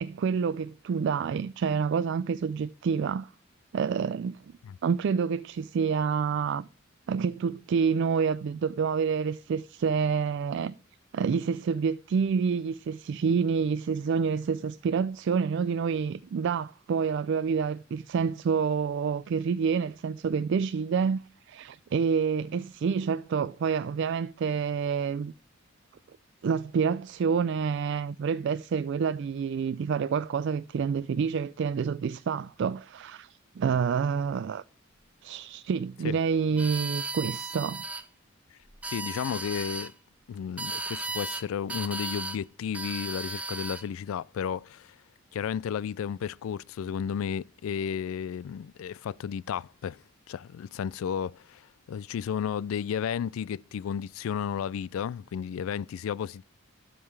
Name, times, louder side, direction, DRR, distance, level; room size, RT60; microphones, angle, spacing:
voice 1, 0.0-3.3 3.7-4.4 4.8-6.7 7.1-10.7 11.1-21.2 21.5-25.3 26.4-34.6 35.2-37.8, right 6 dB, 60° right, 0.3 m, -28 dB
sound 1, 36.6-38.0 38.7-39.9 40.6-41.4 41.7-42.4 42.7-43.9, right 2 dB, 5° right, 0.6 m, -35 dB
voice 2, 38.8-39.9 40.3-44.9 45.3-50.0 50.3-56.4, left 8 dB, 80° left, 0.3 m, -33 dB
12.5 x 5.5 x 3.3 m
head